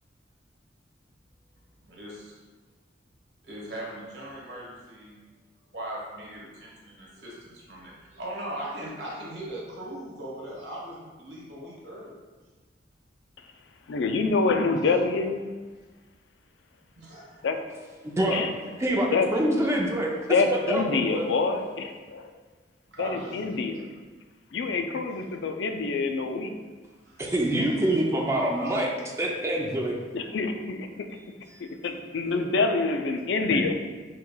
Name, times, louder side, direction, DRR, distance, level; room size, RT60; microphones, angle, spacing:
voice 1, 1.9-2.3 3.4-5.2 5.7-12.2 14.8-15.0 17.0-17.6 22.9-23.6 25.1-25.2 27.1-27.5 28.5-28.7 31.1-31.6 32.2-32.3, right 1 dB, 75° right, -5 dB, 1.3 m, -40 dB
voice 2, 13.9-15.4 17.4-17.5 18.3-18.5 19.1-19.3 20.3-22.2 23.0-23.8 24.5-26.5 30.1-30.9 31.8-33.8, left 4 dB, 85° left, 6 dB, 0.4 m, -26 dB
voice 3, 18.8-20.1 20.5-21.3 27.2-28.9 29.2-30.0, right 1 dB, 15° right, -2 dB, 0.4 m, -25 dB
5.8 x 3.1 x 2.3 m, 1.3 s
head